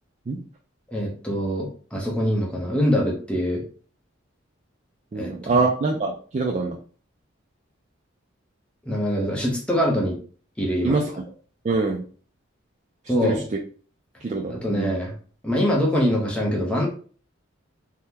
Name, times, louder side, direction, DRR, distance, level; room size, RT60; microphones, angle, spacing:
voice 1, 0.9-3.6 5.1-5.5 8.9-10.2 10.6-11.0 13.1-13.4 14.5-15.1 15.4-16.9, equal, 5° left, -2 dB, 0.6 m, -24 dB
voice 2, 5.1-6.8 10.8-11.2 11.6-12.0 13.2-13.6 14.2-14.9, right 3 dB, 35° right, 0 dB, 0.3 m, -24 dB
3.5 x 2.1 x 2.8 m, 0.41 s
head